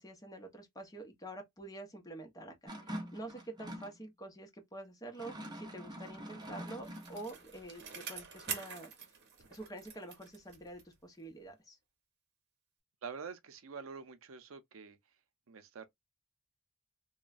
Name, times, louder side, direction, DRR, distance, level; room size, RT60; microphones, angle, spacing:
voice 1, 0.0-2.6 2.8-8.9 9.5-11.8, right 2 dB, 20° left, 0.8 m, -47 dB
sound 1, 2.7-4.0 5.1-7.3, equal, 20° right, 0.6 m, -45 dB
Bicycle, 6.1-11.0 11.4-11.5, right 6 dB, 55° right, 0.8 m, -46 dB
voice 2, 13.0-15.0 15.5-15.9, right 5 dB, 85° right, 0.5 m, -46 dB
3.0 x 2.1 x 2.4 m
head